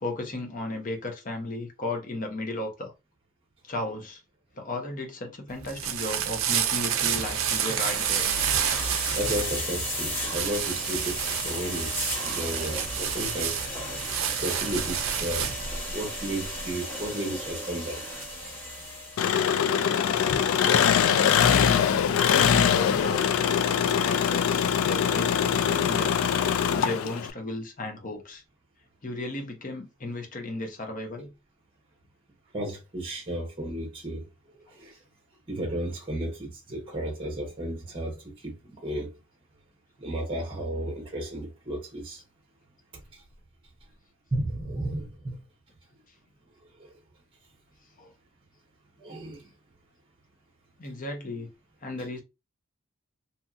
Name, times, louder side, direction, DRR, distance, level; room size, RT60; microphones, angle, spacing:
voice 1, 0.0-2.9 3.7-4.2 4.6-8.3 22.1-23.3 24.0-26.2 26.7-28.4 29.0-31.3 48.0-48.1 50.8-51.5 51.8-52.2, left 2 dB, 40° left, 0.7 m, -35 dB
sound 1, 5.5-15.7, right 9 dB, 70° right, 0.5 m, -29 dB
sound 2, 6.7-19.4, equal, 10° left, 0.8 m, -35 dB
voice 2, 9.1-13.6 14.4-15.5 15.9-18.0 32.5-34.2 34.8-35.0 35.5-39.1 40.0-42.2 43.1-43.2 44.3-45.4 46.8-46.9 49.0-49.5, right 1 dB, 25° right, 0.7 m, -33 dB
Engine, 19.2-27.3, left 8 dB, 75° left, 0.3 m, -23 dB
2.8 x 2.6 x 2.3 m
head